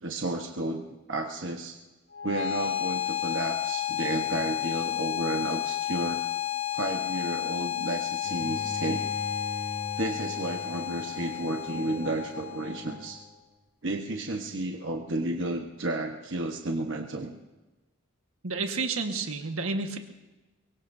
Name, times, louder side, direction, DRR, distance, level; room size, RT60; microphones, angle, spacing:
voice 1, 0.0-1.7 2.2-6.2 6.7-9.0 10.0-13.2 13.8-17.3, right 2 dB, 55° right, 2 dB, 1.1 m, -32 dB
sound 1, 2.1-13.1, left 12 dB, 55° left, 2.1 m, -32 dB
Bowed string instrument, 8.2-13.3, left 1 dB, 80° left, 5.0 m, -41 dB
voice 2, 18.4-20.0, right 4 dB, 80° right, 5 dB, 1.5 m, -30 dB
23.5 x 22.0 x 2.7 m, 1.1 s
head